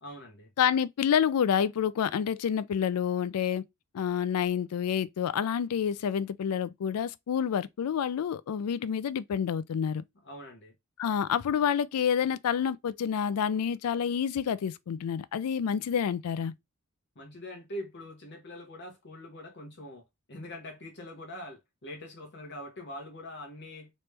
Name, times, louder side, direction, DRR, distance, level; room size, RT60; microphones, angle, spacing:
voice 1, 0.0-0.5 10.2-10.7 17.1-23.9, left 1 dB, 50° left, 1.2 m, -43 dB
voice 2, 0.6-3.6 3.9-10.0 11.0-16.5, left 8 dB, 90° left, 0.4 m, -28 dB
3.1 x 3.0 x 3.3 m
head